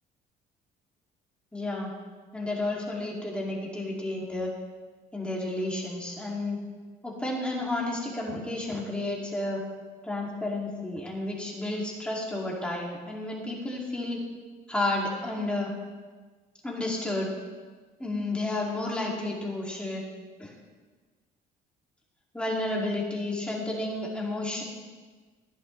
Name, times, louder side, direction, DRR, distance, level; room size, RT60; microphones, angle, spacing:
voice 1, 1.5-1.9 2.3-4.5 5.1-6.6 7.0-9.6 10.0-14.2 14.7-15.7 16.6-17.3 18.0-20.0 20.4-20.5 22.3-24.6, left 2 dB, 5° left, -3 dB, 2.5 m, -31 dB
12.5 x 10.5 x 3.2 m, 1.4 s
cardioid pair, 110°, 17 cm